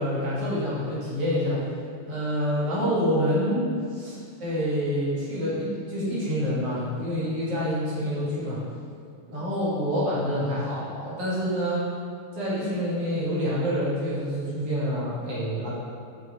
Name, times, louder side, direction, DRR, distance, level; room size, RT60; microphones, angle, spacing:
voice 1, 0.0-1.6 2.1-3.7 3.9-8.6 9.3-11.9 12.3-15.7, equal, 50° right, -9 dB, 2.9 m, -27 dB
6.6 x 6.5 x 4.2 m, 2.3 s
omnidirectional pair, 3.6 m